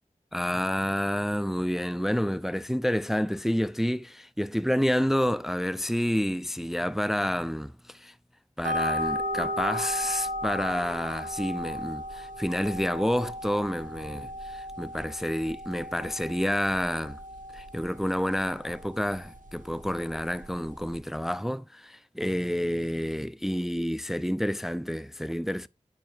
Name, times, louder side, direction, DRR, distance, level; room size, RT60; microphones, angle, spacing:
voice 1, 0.3-8.1 8.6-17.2 17.5-25.7, equal, ahead, 0.4 m, -29 dB
sound 1, 8.6-21.0, left 1 dB, 85° right, 2.0 m, -36 dB
9.1 x 7.1 x 2.5 m
wide cardioid pair, 45°, 13 cm